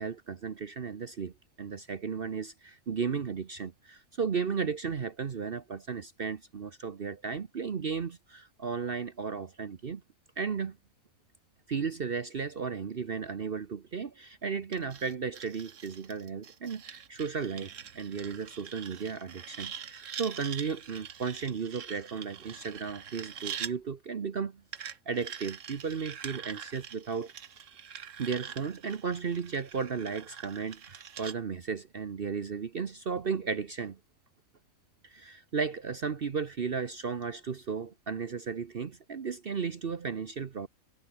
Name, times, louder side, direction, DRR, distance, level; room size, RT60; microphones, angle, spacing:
voice 1, 0.0-10.0 10.4-10.8 11.7-27.3 28.2-34.0 35.0-40.7, right 5 dB, 45° right, 1.1 m, -35 dB
sound 1, 14.7-23.7 24.7-31.4, right 8 dB, 65° right, 1.5 m, -44 dB
omnidirectional pair, 1.5 m